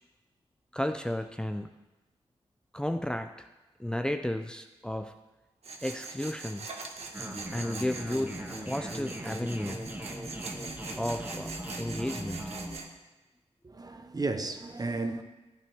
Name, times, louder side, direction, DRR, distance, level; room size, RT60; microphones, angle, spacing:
voice 1, 0.7-1.7 2.7-3.5 3.8-5.1 5.8-6.7 7.5-8.3 8.6-9.8 10.3-10.4 11.0-11.5 11.8-12.5, left 1 dB, 5° left, 0.6 m, -33 dB
Tools, 5.6-12.9, right 3 dB, 65° right, 1.3 m, -42 dB
sound 1, 7.1-12.8, right 1 dB, 15° right, 2.1 m, -39 dB
voice 2, 13.6-15.2, right 3 dB, 35° right, 1.0 m, -33 dB
14.5 x 8.2 x 3.6 m
cardioid pair, 60°, 12 cm